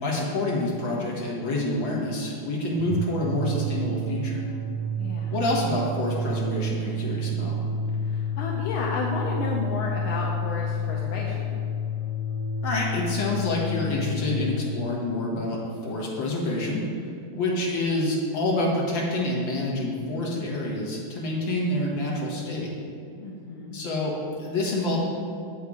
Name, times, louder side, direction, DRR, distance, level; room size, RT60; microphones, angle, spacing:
voice 1, 0.0-4.4 5.3-7.6 12.6-16.8 17.3-22.7 23.7-25.0, left 1 dB, 70° left, -4 dB, 2.3 m, -27 dB
sound 1, 2.7-14.6, left 1 dB, 25° left, 0.8 m, -30 dB
voice 2, 5.0-5.4 8.0-11.6 23.2-23.8, left 2 dB, 85° left, -2 dB, 1.6 m, -32 dB
8.1 x 5.7 x 4.9 m, 2.6 s
omnidirectional pair, 2.2 m